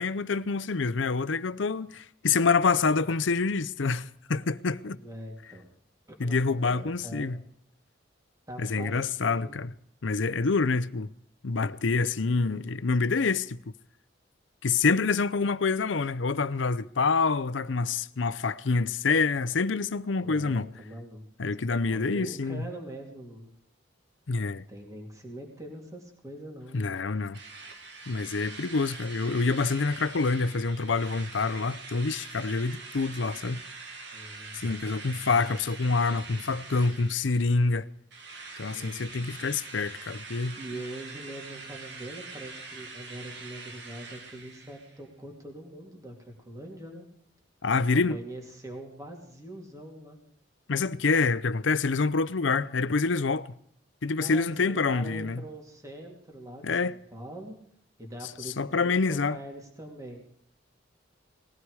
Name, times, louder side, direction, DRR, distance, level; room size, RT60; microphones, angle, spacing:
voice 1, 0.0-5.0 6.2-7.4 8.6-9.7 10.0-11.1 11.4-13.6 14.6-20.7 21.4-22.7 24.3-24.6 26.7-27.4 28.1-33.6 34.5-37.9 38.6-40.6 47.6-48.2 50.7-53.5 54.0-55.4 56.6-56.9 58.6-59.4, left 4 dB, 75° left, 0.7 m, -27 dB
voice 2, 5.0-5.7 6.1-7.3 8.5-9.6 20.2-21.2 21.9-23.6 24.7-26.9 34.1-34.7 38.7-39.1 40.6-47.0 47.7-50.2 54.2-57.6 58.0-60.5, right 1 dB, 15° right, 2.7 m, -43 dB
Drill, 27.3-37.7 38.1-45.0, right 4 dB, 65° right, 2.2 m, -44 dB
19.5 x 15.5 x 4.8 m
head